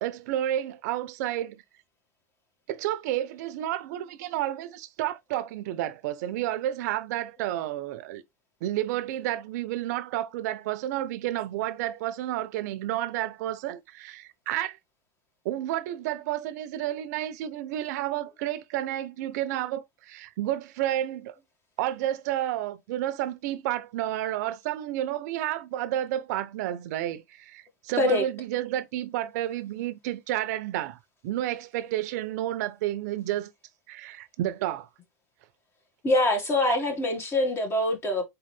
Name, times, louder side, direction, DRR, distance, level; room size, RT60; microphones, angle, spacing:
voice 1, 0.0-1.6 2.7-8.2 8.6-14.8 15.4-21.3 21.8-31.0 31.2-33.5 33.9-34.9 36.6-36.8, right 13 dB, 70° right, 0.6 m, -31 dB
voice 2, 36.0-38.2, left 2 dB, 25° left, 1.7 m, -24 dB
4.2 x 3.8 x 3.3 m
supercardioid pair, 115°, 9 cm